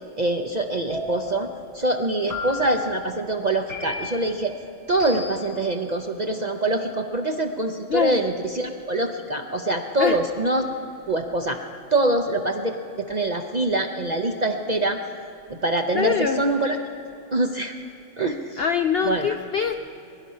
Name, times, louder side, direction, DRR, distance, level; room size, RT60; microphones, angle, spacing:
voice 1, 0.2-4.6 4.9-10.7 11.1-11.6 11.9-15.0 15.5-16.8 17.3-17.7 18.2-18.6 19.0-19.4, right 2 dB, 45° right, 4 dB, 0.6 m, -24 dB
sound 1, 0.9-1.5 2.3-2.9 3.7-4.3 5.0-5.6, left 2 dB, 70° right, 4.6 m, -34 dB
voice 2, 15.9-16.4 18.6-19.7, left 7 dB, 65° left, 8 dB, 0.6 m, -23 dB
22.0 x 11.0 x 5.6 m, 2.9 s
omnidirectional pair, 1.5 m